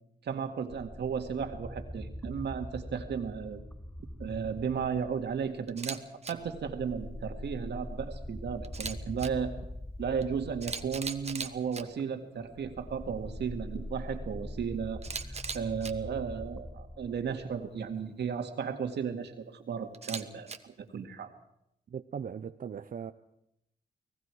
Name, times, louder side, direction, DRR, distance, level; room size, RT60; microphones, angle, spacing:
voice 1, 0.2-3.6 4.2-9.5 10.0-21.3, right 6 dB, 80° right, 2.1 m, -35 dB
sound 1, 0.7-5.9 6.4-17.9, left 1 dB, 10° left, 0.8 m, -43 dB
Camera, 5.7-6.0 6.2-6.3 8.6-9.3 10.2-10.3 10.6-11.8 15.0-15.9 19.9-20.6, right 5 dB, 40° right, 1.2 m, -38 dB
voice 2, 21.9-23.1, right 7 dB, 55° right, 0.7 m, -39 dB
29.5 x 19.0 x 4.8 m
cardioid pair, 95°, 17 cm